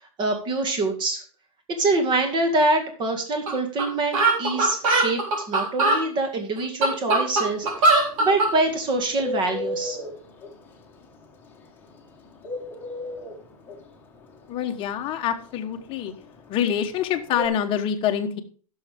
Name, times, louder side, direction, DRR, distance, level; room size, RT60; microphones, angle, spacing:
voice 1, 0.2-1.2 1.8-10.0, right 2 dB, 25° right, 5 dB, 2.1 m, -25 dB
sound 1, 3.5-3.6 3.8-3.9 4.1-6.0 6.6-8.5, right 2 dB, 65° right, 3.8 m, -20 dB
Bird, 7.5-17.5, left 1 dB, 10° left, 1.6 m, -34 dB
voice 2, 14.5-16.1 16.5-18.4, left 9 dB, 30° left, 5 dB, 1.1 m, -26 dB
15.5 x 6.5 x 3.5 m, 0.40 s
supercardioid pair, 150°, 18 cm